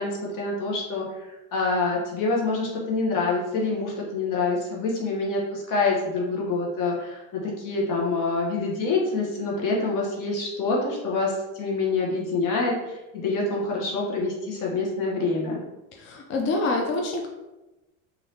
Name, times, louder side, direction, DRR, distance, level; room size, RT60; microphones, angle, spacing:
voice 1, 0.0-15.6, left 3 dB, 50° left, -3 dB, 0.9 m, -26 dB
voice 2, 15.9-17.3, left 2 dB, 30° left, 1 dB, 0.5 m, -26 dB
3.2 x 2.7 x 2.7 m, 1.0 s
supercardioid pair, 110°, 42 cm